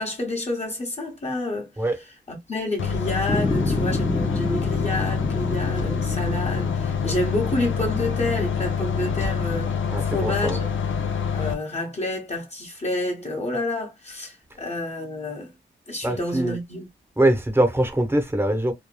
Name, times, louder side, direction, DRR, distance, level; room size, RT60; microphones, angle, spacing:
voice 1, 0.0-1.7 2.3-9.7 10.0-10.6 11.3-15.5 15.9-16.9, left 1 dB, 35° left, 1.3 m, -29 dB
sound 1, 2.8-11.5, left 6 dB, 75° left, 0.6 m, -26 dB
sound 2, 3.3-9.7, left 1 dB, 5° left, 0.5 m, -31 dB
voice 2, 9.9-10.6 16.0-16.6 17.2-18.7, right 1 dB, 10° right, 0.9 m, -22 dB
3.1 x 2.2 x 2.2 m
cardioid pair, 60°, 21 cm